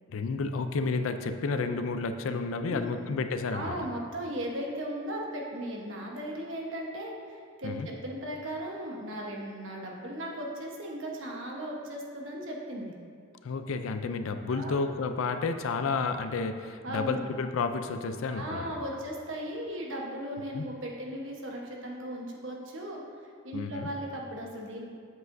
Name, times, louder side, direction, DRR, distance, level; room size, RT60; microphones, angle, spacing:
voice 1, 0.1-3.8 7.6-7.9 13.4-18.8 20.5-20.6 23.5-23.9, left 4 dB, 90° left, 8 dB, 0.4 m, -31 dB
voice 2, 2.7-3.2 3.5-13.0 14.5-14.8 16.8-17.2 18.3-24.9, right 1 dB, 75° right, -1 dB, 1.1 m, -37 dB
8.0 x 7.5 x 2.6 m, 2.1 s
head